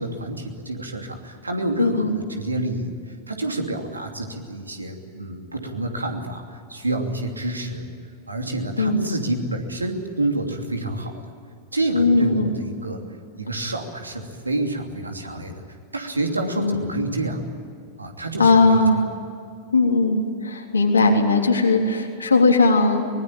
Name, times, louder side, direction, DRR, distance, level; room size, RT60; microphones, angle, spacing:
voice 1, 0.0-7.9 8.3-11.2 11.7-13.0 13.4-15.6 15.9-17.4 18.0-18.8, right 2 dB, 80° right, 4 dB, 2.8 m, -28 dB
voice 2, 1.8-2.2 8.8-9.1 11.9-12.6 16.6-16.9 18.4-19.0 19.7-23.1, left 3 dB, 75° left, 1 dB, 3.6 m, -18 dB
24.0 x 21.0 x 8.9 m, 2.4 s
figure-of-eight pair, 90°, 0 cm